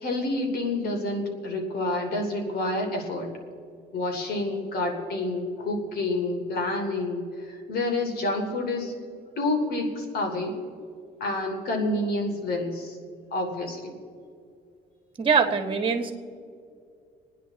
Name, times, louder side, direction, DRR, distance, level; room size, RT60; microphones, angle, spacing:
voice 1, 0.0-3.3 3.9-7.2 7.7-8.9 9.4-10.6 11.2-12.9 13.3-13.9, left 2 dB, 65° left, 3 dB, 3.1 m, -28 dB
voice 2, 15.2-16.1, right 5 dB, 30° right, 6 dB, 1.7 m, -23 dB
27.5 x 9.8 x 4.2 m, 2.4 s
cardioid pair, 110°, 17 cm